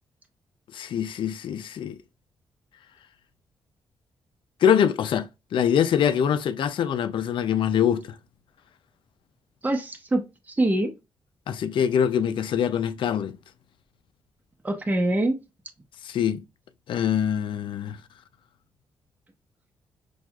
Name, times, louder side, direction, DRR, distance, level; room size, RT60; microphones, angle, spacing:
voice 1, 0.7-2.0 4.6-8.1 11.5-13.3 16.0-16.4 16.9-18.0, left 8 dB, 70° left, 0.4 m, -24 dB
voice 2, 9.6-10.9 14.6-15.4, right 1 dB, 20° right, 0.8 m, -24 dB
6.1 x 2.4 x 2.3 m
cardioid pair, 105°, 9 cm